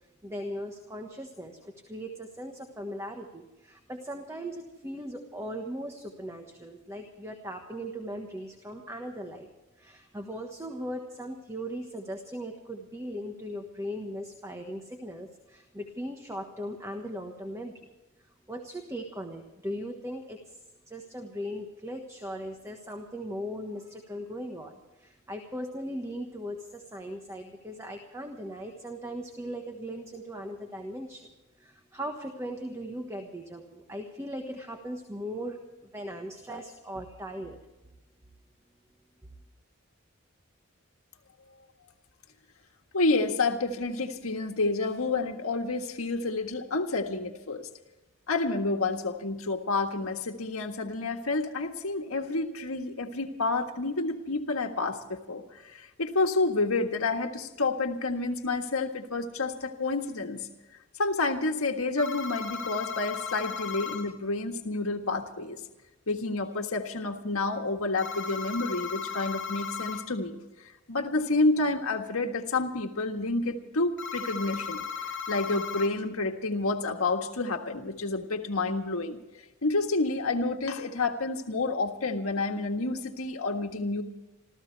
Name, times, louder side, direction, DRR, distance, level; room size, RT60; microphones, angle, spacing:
voice 1, 0.2-9.5 9.8-17.9 18.5-20.6 20.9-31.3 31.6-37.6, equal, 15° right, 3 dB, 1.3 m, -38 dB
voice 2, 42.9-47.7 48.3-55.4 55.7-60.4 61.0-65.6 66.1-70.4 70.9-79.2 79.6-84.0, left 3 dB, 85° left, 4 dB, 1.6 m, -29 dB
sound 1, 62.0-64.0 68.0-70.0 74.0-75.9, left 6 dB, 55° left, 2.6 m, -36 dB
27.5 x 14.5 x 3.4 m, 1.1 s
head